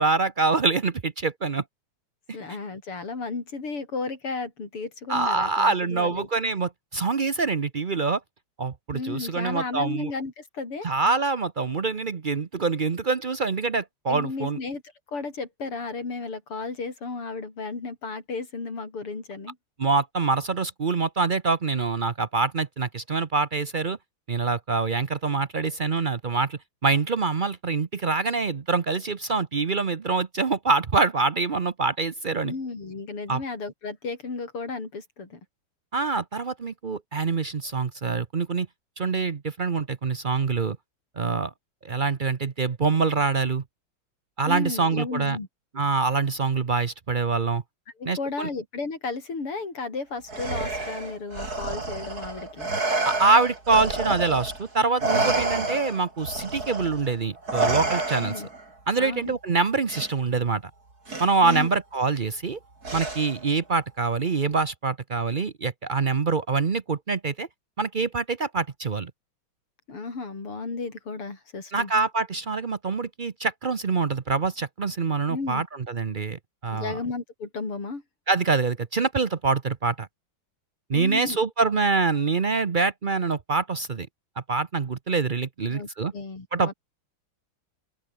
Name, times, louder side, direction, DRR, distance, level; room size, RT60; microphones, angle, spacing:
voice 1, 0.0-1.6 5.1-8.2 8.6-10.1 10.8-14.6 19.8-24.0 24.3-32.5 33.3-33.4 35.9-38.7 39.0-40.8 41.2-41.5 41.8-43.6 44.4-45.4 45.7-47.6 48.1-48.5 53.0-58.3 58.9-60.6 61.2-62.6 62.9-67.5 67.8-69.1 71.7-77.0 78.3-80.1 80.9-84.1 84.5-86.1 86.5-86.7, right 4 dB, 70° right, 0.4 m, -25 dB
voice 2, 2.3-6.3 8.9-10.9 14.1-14.8 15.1-19.6 32.4-35.4 44.5-45.5 48.0-52.7 58.1-58.5 59.0-59.4 61.4-61.7 69.9-71.9 75.3-75.6 76.7-78.0 80.9-81.4 85.6-86.7, left 4 dB, 85° left, 5.6 m, -34 dB
Respiratory sounds, 50.3-54.6 55.0-58.6 59.9-60.1 61.1-61.6 62.8-63.5, right 3 dB, 40° right, 5.4 m, -29 dB
open air
omnidirectional pair, 2.4 m